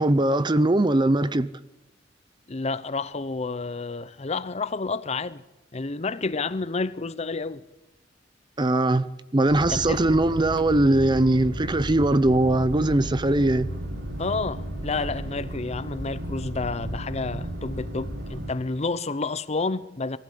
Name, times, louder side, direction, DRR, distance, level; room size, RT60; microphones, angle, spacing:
voice 1, 0.0-1.5 8.6-9.0 9.3-13.7, right 2 dB, 25° right, 0.6 m, -21 dB
voice 2, 2.5-5.4 5.7-7.6 9.7-10.1 14.2-20.2, left 3 dB, 35° left, 0.7 m, -30 dB
sound 1, 9.5-18.5, right 1 dB, 70° right, 2.6 m, -34 dB
23.0 x 15.0 x 8.4 m
head